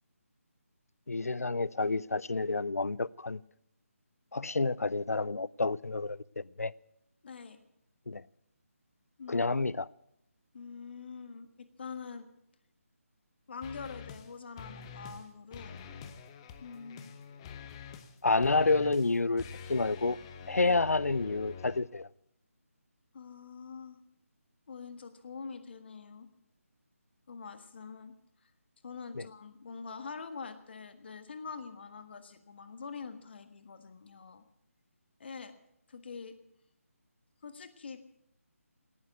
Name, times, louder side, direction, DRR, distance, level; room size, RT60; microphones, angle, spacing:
voice 1, 1.1-3.4 4.3-6.7 8.1-8.2 9.3-9.9 18.2-19.4 19.7-20.2 20.5-22.1 29.2-29.3, left 3 dB, 80° left, 0.5 m, -29 dB
voice 2, 7.2-7.6 9.2-9.5 10.5-12.3 13.5-15.8 16.6-17.1 20.6-20.8 23.1-24.0 24.7-26.3 27.3-28.1 28.4-28.5 28.8-34.4 35.2-35.5 35.9-36.4 37.4-38.0, left 5 dB, 45° left, 1.5 m, -45 dB
sound 1, 13.6-14.3 14.6-15.3 15.5-21.8, left 6 dB, 20° left, 0.9 m, -46 dB
18.5 x 9.8 x 8.0 m
figure-of-eight pair, 155°, 8 cm